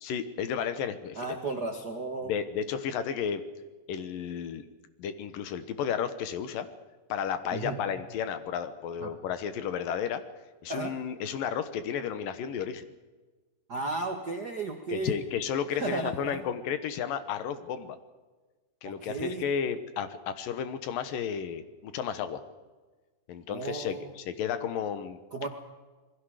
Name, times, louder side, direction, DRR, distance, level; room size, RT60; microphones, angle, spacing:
voice 1, 0.0-1.3 2.2-3.4 3.9-4.6 5.0-6.7 7.1-10.2 10.6-12.9 14.9-18.0 18.8-22.4 23.3-25.2, left 8 dB, 70° left, 11 dB, 2.8 m, -33 dB
voice 2, 1.1-2.3 7.5-7.8 9.0-9.1 10.7-10.9 13.7-15.2 15.7-16.4 18.8-19.5 23.5-24.1 25.3-25.5, right 3 dB, 55° right, 3 dB, 1.1 m, -34 dB
27.5 x 20.5 x 5.0 m, 1.3 s
omnidirectional pair, 4.2 m